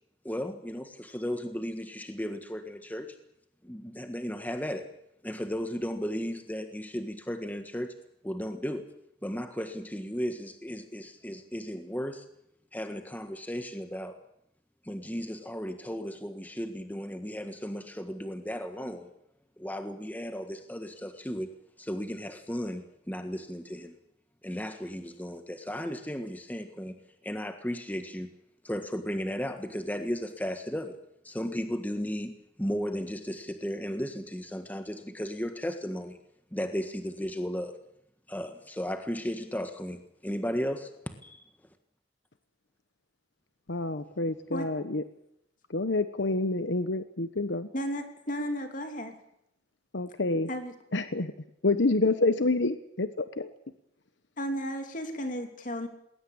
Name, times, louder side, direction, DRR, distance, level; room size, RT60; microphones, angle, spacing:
voice 1, 0.2-3.1 3.6-4.8 5.2-7.9 8.2-8.9 9.2-12.2 12.7-14.2 14.8-19.1 19.6-21.5 21.8-23.9 24.4-26.9 27.2-28.3 28.6-31.0 31.2-32.3 32.6-36.2 36.5-37.7 38.3-41.4, equal, 10° left, 7 dB, 1.6 m, -35 dB
voice 2, 43.7-45.0 45.7-47.7 49.9-50.5 50.9-51.3 51.6-53.5, left 2 dB, 75° left, 11 dB, 1.1 m, -28 dB
voice 3, 47.7-49.1 50.5-50.7 54.4-55.9, equal, 45° left, 5 dB, 3.0 m, -34 dB
20.5 x 18.5 x 8.7 m, 0.78 s
head